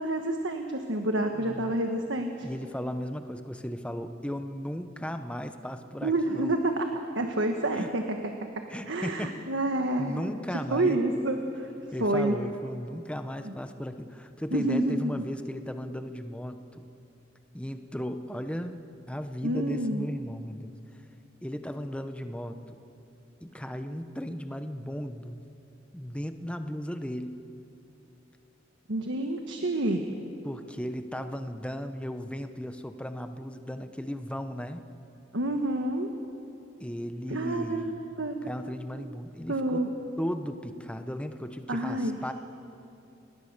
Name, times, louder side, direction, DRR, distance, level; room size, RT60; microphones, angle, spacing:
voice 1, 0.0-2.5 6.0-8.0 8.9-10.3 10.7-11.7 12.0-12.4 13.4-13.5 14.5-15.2 19.4-20.1 28.9-30.1 35.3-36.1 37.3-38.7 38.9-39.2 39.5-39.9 41.7-42.2, right 1 dB, 70° right, 4 dB, 1.5 m, -28 dB
voice 2, 1.4-1.7 2.4-6.5 7.7-7.9 8.7-9.4 10.0-11.0 11.9-16.9 17.5-20.7 21.4-22.8 23.4-25.4 25.9-27.4 30.4-34.9 36.8-37.9 38.5-39.8 40.2-42.3, equal, 5° left, 8 dB, 1.0 m, -36 dB
30.0 x 19.5 x 6.9 m, 2.8 s
head